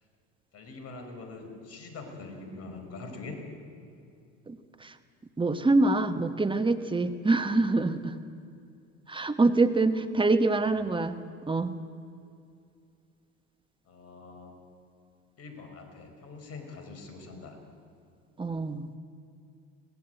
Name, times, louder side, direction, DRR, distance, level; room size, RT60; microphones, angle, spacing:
voice 1, 0.5-3.4 10.5-11.1 13.8-14.7 15.4-17.6, left 3 dB, 45° left, 5 dB, 5.1 m, -44 dB
voice 2, 5.4-8.1 9.1-11.2 11.5-11.8 18.4-19.0, right 3 dB, 15° right, 10 dB, 1.3 m, -25 dB
22.5 x 18.0 x 7.9 m, 2.5 s
hypercardioid pair, 80°, 34 cm